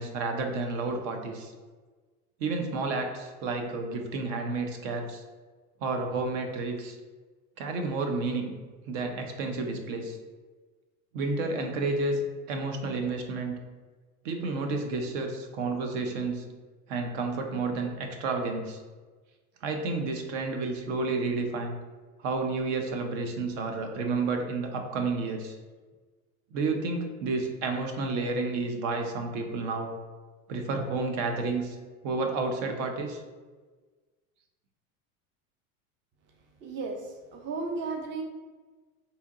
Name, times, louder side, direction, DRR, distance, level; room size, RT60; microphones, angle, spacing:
voice 1, 0.0-1.5 2.4-5.2 5.8-7.0 7.6-8.5 8.9-10.2 11.1-12.2 12.5-13.6 14.2-16.4 16.9-18.8 19.6-21.8 22.2-25.6 26.5-29.9 30.5-31.8 32.0-33.2, right 3 dB, 60° right, 4 dB, 0.7 m, -31 dB
voice 2, 36.6-38.2, right 3 dB, 25° right, 2 dB, 0.5 m, -34 dB
4.2 x 2.9 x 2.4 m, 1.3 s
hypercardioid pair, 100°, 43 cm